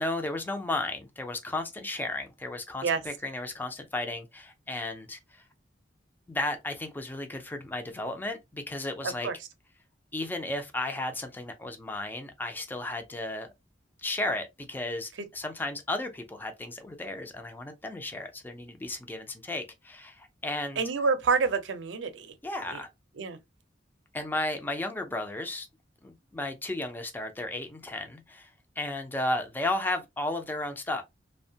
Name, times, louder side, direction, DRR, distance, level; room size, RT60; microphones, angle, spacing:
voice 1, 0.0-5.4 6.3-9.3 10.1-13.5 14.0-20.8 22.4-22.9 24.1-25.7 26.0-28.5 28.8-31.0, left 2 dB, 10° left, 0.3 m, -34 dB
voice 2, 9.0-9.3 20.8-22.3 22.7-22.8 23.2-23.4, right 5 dB, 75° right, 0.5 m, -28 dB
2.6 x 2.1 x 2.6 m
head